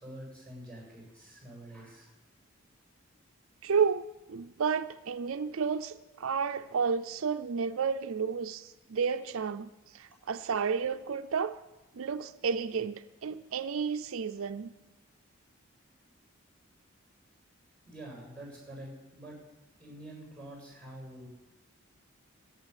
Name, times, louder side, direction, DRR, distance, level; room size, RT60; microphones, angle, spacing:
voice 1, 0.0-2.1 17.8-19.4 19.8-21.3, right 1 dB, 5° left, -1 dB, 7.9 m, -46 dB
voice 2, 3.6-11.6 12.0-14.7, right 6 dB, 75° right, 10 dB, 0.5 m, -31 dB
13.5 x 9.5 x 9.9 m, 1.0 s
head